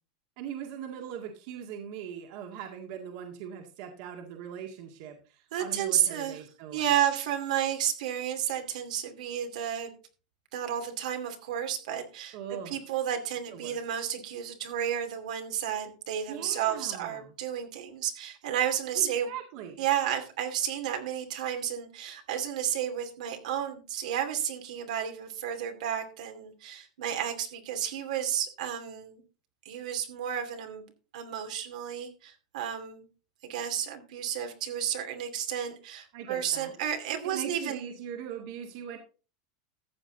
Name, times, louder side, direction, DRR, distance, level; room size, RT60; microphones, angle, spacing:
voice 1, 0.4-6.9 12.3-12.7 13.5-13.8 16.3-17.3 19.0-19.8 36.1-36.7 37.2-39.0, right 8 dB, 60° right, 3 dB, 2.0 m, -40 dB
voice 2, 5.5-6.4 6.7-9.9 10.5-19.3 19.8-29.2 29.6-30.8 31.1-33.1 33.4-37.9, right 10 dB, 80° right, 5 dB, 2.5 m, -32 dB
14.0 x 7.6 x 3.9 m, 0.35 s
supercardioid pair, 140°, 4 cm